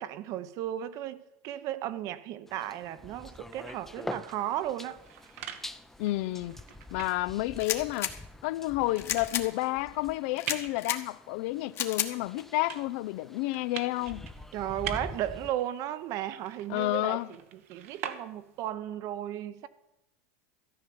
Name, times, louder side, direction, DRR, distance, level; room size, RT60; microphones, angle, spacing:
voice 1, 0.0-5.0 14.5-17.2 17.7-19.7, right 12 dB, 50° right, 0.8 m, -35 dB
sound 1, 2.5-15.5, left 2 dB, 5° left, 0.5 m, -46 dB
sound 2, 4.8-18.7, right 10 dB, 85° right, 1.1 m, -45 dB
voice 2, 6.0-6.6 6.9-8.1 8.4-14.3 16.7-17.3, left 18 dB, 65° left, 0.4 m, -30 dB
sound 3, 7.6-8.1 9.0-9.5 10.4-11.0 11.7-12.1, left 9 dB, 35° left, 1.2 m, -32 dB
13.5 x 5.6 x 9.4 m
supercardioid pair, 135°, 7 cm